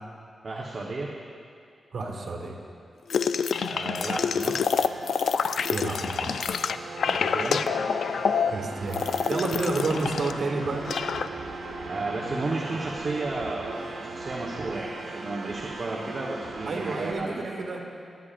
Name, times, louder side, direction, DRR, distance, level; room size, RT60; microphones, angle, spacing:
voice 1, 0.4-1.1 3.6-4.8 7.0-7.6 11.8-17.5, right 2 dB, 45° right, -3 dB, 1.1 m, -33 dB
voice 2, 1.9-2.6 5.7-6.5 8.5-10.8 16.7-17.8, right 3 dB, 65° right, 0 dB, 2.0 m, -30 dB
sound 1, 3.1-10.4 10.6-11.3, left 6 dB, 75° left, 0.3 m, -27 dB
sound 2, 4.7-17.1, right 3 dB, 85° right, 1.3 m, -38 dB
21.5 x 10.0 x 2.5 m, 2.4 s
cardioid pair, 80°, 0 cm